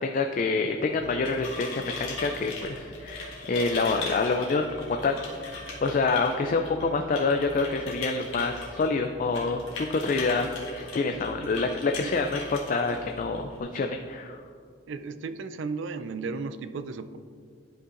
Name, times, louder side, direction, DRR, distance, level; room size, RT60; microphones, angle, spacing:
voice 1, 0.0-4.7 5.0-5.2 5.5-10.5 10.7-14.4, left 3 dB, 40° left, 4 dB, 0.3 m, -27 dB
sound 1, 0.9-13.6, left 3 dB, 80° left, 1.6 m, -39 dB
voice 2, 11.1-11.6 12.0-12.1 14.9-17.2, right 4 dB, 70° right, 12 dB, 0.4 m, -35 dB
11.0 x 5.5 x 2.5 m, 2.2 s
head